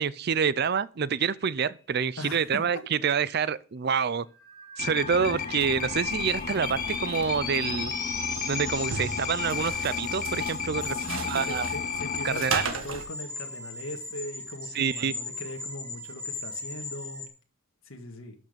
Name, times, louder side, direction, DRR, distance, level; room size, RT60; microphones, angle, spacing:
voice 1, 0.0-4.3 4.8-7.9 8.5-11.0 11.2-11.7 12.2-12.7 14.7-15.1, right 6 dB, 50° right, 0.5 m, -27 dB
voice 2, 2.2-2.6 10.9-17.2 17.9-18.3, left 1 dB, 75° left, 1.8 m, -40 dB
sound 1, 4.3-17.3, left 2 dB, 15° left, 1.9 m, -38 dB
sound 2, 4.8-12.7, left 7 dB, 40° left, 0.6 m, -33 dB
sound 3, 5.5-13.0, right 4 dB, 80° right, 1.6 m, -38 dB
11.5 x 6.3 x 5.2 m
head